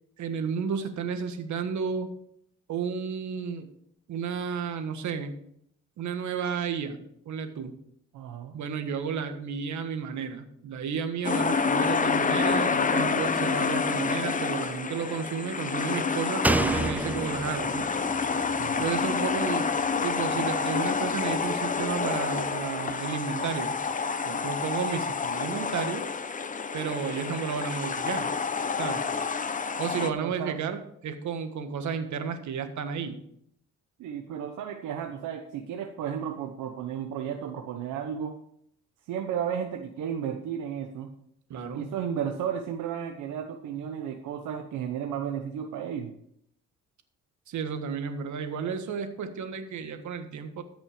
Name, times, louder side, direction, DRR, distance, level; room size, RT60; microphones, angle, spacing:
voice 1, 0.2-2.1 2.7-3.7 4.1-5.3 6.0-7.0 7.2-7.7 8.5-17.9 18.8-19.7 20.0-23.7 24.2-26.0 26.7-28.3 28.8-29.0 29.8-33.2 41.5-41.8 47.5-50.6, right 6 dB, 70° right, 8 dB, 1.5 m, -32 dB
voice 2, 8.1-8.6 18.6-18.8 29.9-30.6 34.0-38.4 39.1-41.1 41.7-46.1, right 8 dB, 85° right, 4 dB, 1.0 m, -33 dB
sound 1, 11.2-30.1, left 5 dB, 25° left, 0.8 m, -28 dB
Slam, 16.4-19.9 20.2-20.3, right 1 dB, 5° right, 0.4 m, -30 dB
14.0 x 6.1 x 5.0 m, 0.70 s
cardioid pair, 90°, 30 cm